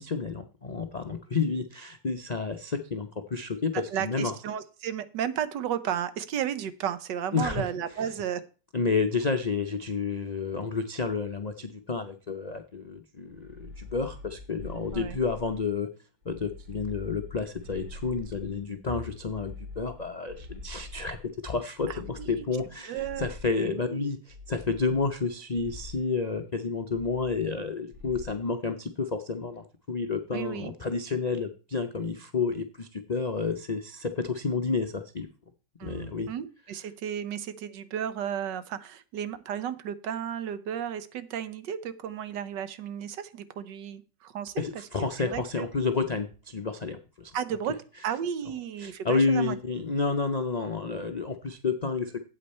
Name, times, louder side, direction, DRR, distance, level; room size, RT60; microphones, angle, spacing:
voice 1, 0.0-4.3 7.3-7.7 8.7-15.9 16.2-21.2 21.4-35.3 35.8-36.3 44.6-47.3 48.8-52.2, left 4 dB, 70° left, 6 dB, 0.4 m, -30 dB
voice 2, 3.9-8.4 14.9-15.2 21.9-22.4 22.9-23.3 23.6-24.1 30.3-30.7 35.8-44.6 45.2-45.7 47.3-47.8 48.0-49.6, right 9 dB, 75° right, 14 dB, 1.5 m, -33 dB
sound 1, 13.3-15.7 16.2-18.7 19.1-21.3 21.8-23.7 24.3-25.3 25.5-26.0 26.9-27.6 27.9-28.4, left 3 dB, 40° right, 7.3 m, -44 dB
8.7 x 8.3 x 4.2 m, 0.35 s
omnidirectional pair, 1.9 m